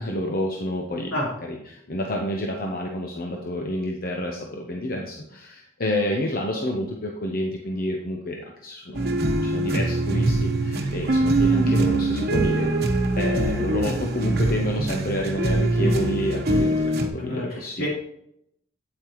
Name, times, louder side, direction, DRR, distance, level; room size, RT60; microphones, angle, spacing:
voice 1, 0.0-1.1 1.4-9.0 9.4-12.9 13.2-17.9, left 1 dB, 45° left, 1 dB, 0.9 m, -29 dB
sound 1, 8.9-17.1, right 2 dB, 55° right, 1.1 m, -23 dB
voice 2, 17.2-17.9, left 1 dB, 75° left, -5 dB, 3.8 m, -29 dB
8.7 x 8.5 x 3.1 m, 0.77 s
head